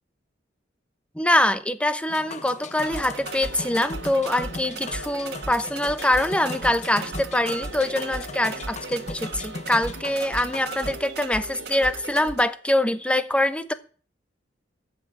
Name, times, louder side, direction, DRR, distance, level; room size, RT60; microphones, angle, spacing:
voice 1, 1.1-13.7, left 1 dB, 5° left, 0.9 m, -24 dB
sound 1, 2.1-11.0, left 3 dB, 40° left, 0.8 m, -39 dB
sound 2, 2.8-12.4, right 3 dB, 60° right, 1.5 m, -37 dB
sound 3, 3.2-12.3, right 2 dB, 80° right, 1.4 m, -45 dB
14.0 x 6.4 x 8.8 m
head